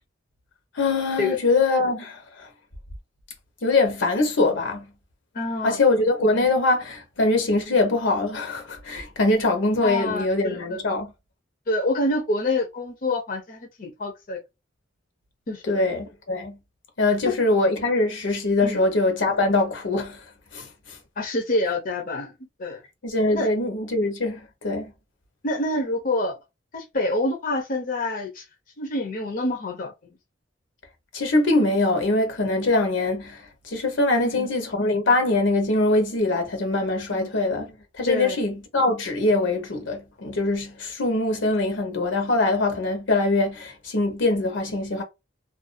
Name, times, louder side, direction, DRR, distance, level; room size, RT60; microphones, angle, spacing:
voice 1, 0.8-2.5 3.6-4.9 5.6-11.1 15.6-16.6 17.0-20.2 20.5-21.0 23.0-24.9 31.1-33.4 33.7-37.7 38.0-45.0, left 2 dB, 75° left, 0.8 m, -23 dB
voice 2, 5.3-5.8 9.8-10.8 11.7-14.4 15.5-15.8 17.3-17.4 18.6-18.8 21.2-22.3 22.6-22.8 23.3-23.5 25.4-26.4 26.7-28.4 28.8-29.9 34.1-34.5 37.1-37.3 38.1-38.4, left 2 dB, 45° left, 0.6 m, -27 dB
2.5 x 2.3 x 2.4 m
head